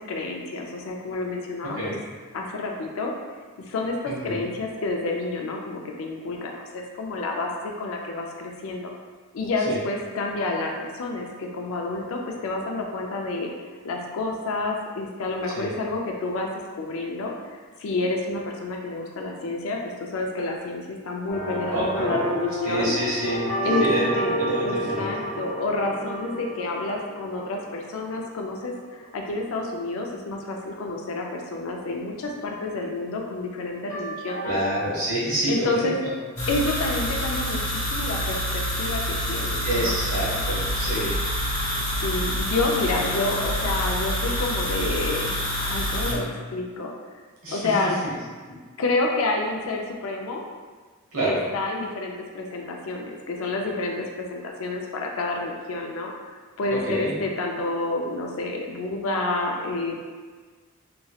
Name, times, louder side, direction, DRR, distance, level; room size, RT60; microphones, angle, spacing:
voice 1, 0.0-1.9 2.3-3.1 3.7-3.9 4.2-8.9 9.3-13.5 13.8-16.5 16.8-17.3 17.8-19.8 20.1-23.3 23.6-34.6 35.5-36.0 36.5-39.9 41.8-46.9 47.5-48.0 48.8-50.4 51.2-56.1 56.6-59.9, left 2 dB, 70° left, 1 dB, 0.4 m, -29 dB
voice 2, 4.1-4.4 9.6-9.8 15.5-15.7 21.7-22.2 22.6-24.1 24.4-25.1 34.4-36.1 39.6-41.1 47.4-47.7 48.0-48.1 51.1-51.4 56.8-57.1, right 1 dB, 75° right, -7 dB, 1.1 m, -27 dB
sound 1, 21.3-28.5 33.9-34.8, equal, 35° left, 1.1 m, -30 dB
sound 2, 36.4-46.1, equal, 20° left, 1.4 m, -27 dB
3.0 x 2.8 x 2.3 m, 1.5 s
head